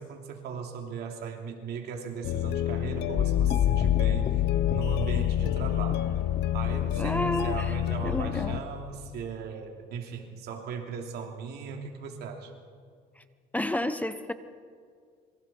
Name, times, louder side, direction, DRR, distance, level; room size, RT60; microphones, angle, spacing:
voice 1, 0.0-6.1 6.5-12.5, right 6 dB, 75° right, 3 dB, 3.1 m, -38 dB
sound 1, 2.2-8.6, left 12 dB, 85° left, 0.8 m, -30 dB
sound 2, 3.2-9.2, left 12 dB, 40° left, 1.0 m, -29 dB
voice 2, 7.0-7.7 8.0-8.6 13.2-13.3 13.5-14.3, left 1 dB, 10° left, 10 dB, 0.9 m, -30 dB
26.5 x 24.0 x 4.5 m, 2.1 s
cardioid pair, 110°, 17 cm